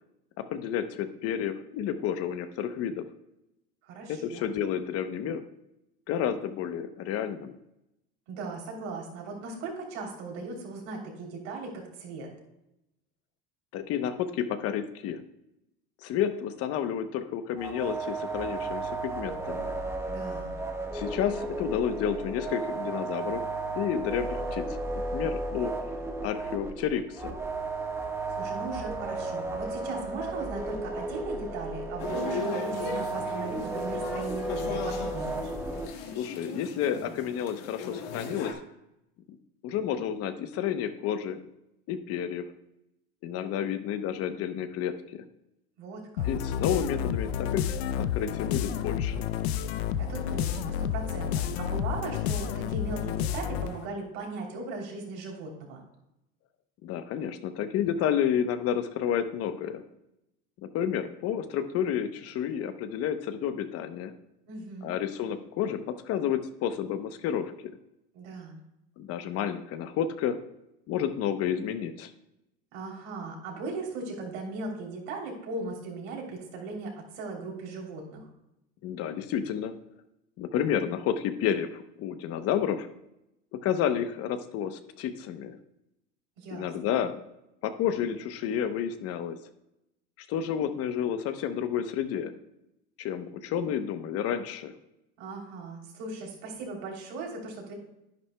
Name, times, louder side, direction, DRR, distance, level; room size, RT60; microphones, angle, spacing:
voice 1, 0.4-3.0 4.1-5.4 6.1-7.6 13.7-15.2 16.0-19.7 20.9-23.4 23.8-24.6 25.1-25.7 26.2-27.4 36.1-38.6 39.6-41.4 41.9-42.5 43.2-45.2 46.2-49.3 56.8-59.8 60.6-64.1 64.8-67.5 69.0-70.4 70.9-72.1 78.8-79.7 80.4-82.9 83.6-85.6 86.5-87.2 87.6-89.4 90.2-92.3 93.0-94.7, left 9 dB, 50° left, 9 dB, 0.9 m, -30 dB
voice 2, 3.8-4.5 8.3-12.3 20.0-20.5 28.4-35.5 45.8-46.3 50.0-55.8 64.5-64.9 68.1-68.6 72.7-78.3 86.4-87.0 95.2-97.7, right 3 dB, 70° right, 0 dB, 3.3 m, -38 dB
sound 1, 17.6-35.9, right 2 dB, 10° right, 1.3 m, -34 dB
sound 2, 32.0-38.5, left 5 dB, 70° left, 1.7 m, -37 dB
sound 3, 46.2-53.9, left 9 dB, 90° left, 0.6 m, -30 dB
10.5 x 9.9 x 2.3 m, 0.86 s
supercardioid pair, 120°, 30 cm